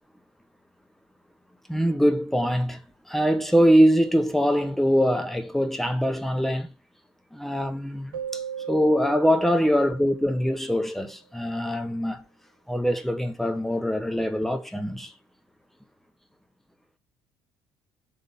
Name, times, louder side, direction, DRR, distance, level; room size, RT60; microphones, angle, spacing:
voice 1, 1.7-2.8 3.1-6.7 7.3-12.2 12.7-15.1, equal, ahead, 1.5 m, -23 dB
Keyboard (musical), 8.1-10.9, right 8 dB, 75° right, 0.9 m, -37 dB
7.7 x 4.0 x 5.6 m
figure-of-eight pair, 50°, 11 cm